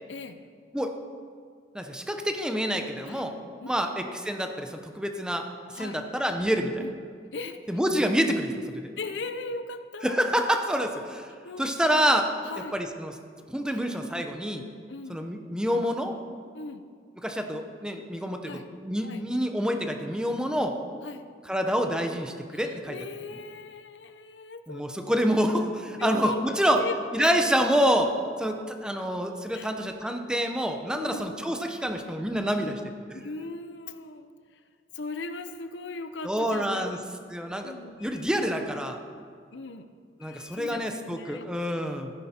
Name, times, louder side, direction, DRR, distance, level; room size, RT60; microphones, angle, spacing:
voice 1, 1.7-3.3 3.7-5.5 5.8-6.8 7.7-8.9 10.0-11.3 11.6-12.3 12.7-13.1 13.5-14.6 15.1-16.1 17.2-20.7 21.5-23.0 24.7-26.8 27.1-28.1 28.4-32.7 36.2-37.0 37.3-37.7 38.0-39.0 40.2-42.1, equal, 5° right, 5 dB, 0.8 m, -27 dB
voice 2, 9.0-10.3 11.4-11.7 12.4-12.7 13.7-13.8 14.9-15.2 16.5-16.8 18.4-18.7 19.0-19.2 21.0-21.3 22.5-24.8 26.0-27.3 29.5-29.7 31.0-31.3 32.6-32.7 33.1-34.6 34.9-37.0 37.6-38.2 39.5-39.9 40.2-41.5, left 3 dB, 90° left, 10 dB, 0.7 m, -38 dB
14.5 x 10.0 x 4.4 m, 2.1 s
head